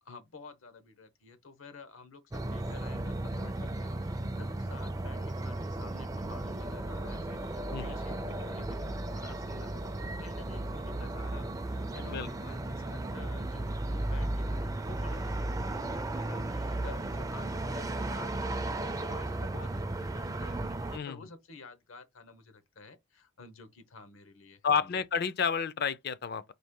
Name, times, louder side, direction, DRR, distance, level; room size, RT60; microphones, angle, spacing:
voice 1, 0.0-24.9, left 4 dB, 80° left, 0.9 m, -51 dB
sound 1, 2.3-21.0, right 2 dB, 15° right, 0.4 m, -35 dB
voice 2, 24.6-26.4, left 6 dB, 50° left, 0.4 m, -30 dB
4.1 x 2.8 x 3.7 m
head